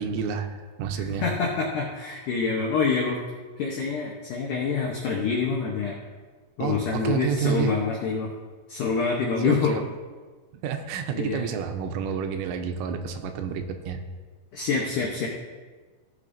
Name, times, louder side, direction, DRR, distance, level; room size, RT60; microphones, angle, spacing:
voice 1, 0.0-1.3 6.6-7.7 9.4-9.8 10.6-14.0, right 7 dB, 90° right, 6 dB, 3.0 m, -29 dB
voice 2, 1.0-3.2 3.6-6.0 6.6-8.3 8.7-9.7 11.1-11.4 14.5-15.3, left 5 dB, 90° left, -2 dB, 1.8 m, -26 dB
16.0 x 6.7 x 2.6 m, 1.4 s
omnidirectional pair, 5.1 m